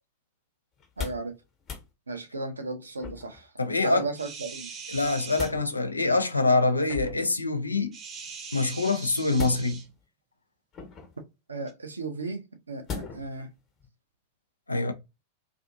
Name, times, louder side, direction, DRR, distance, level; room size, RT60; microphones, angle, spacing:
sound 1, 0.8-1.3 1.6-1.9 3.0-3.5 4.9-5.6 6.9-7.3 9.3-10.0 10.7-11.2 12.9-13.4 13.8-13.9, left 6 dB, 30° left, 1.0 m, -38 dB
voice 1, 1.0-1.3 2.1-3.5 3.8-4.7 6.7-6.8 11.5-13.5 14.7-14.9, right 3 dB, 75° right, 0.6 m, -35 dB
voice 2, 3.6-4.1 4.9-7.9 8.5-9.8 14.7-14.9, left 3 dB, 80° left, 0.4 m, -25 dB
sound 2, 4.2-5.5 7.9-9.9 11.7-11.8, right 6 dB, 30° right, 0.7 m, -41 dB
2.5 x 2.5 x 2.5 m
figure-of-eight pair, 90°, 0 cm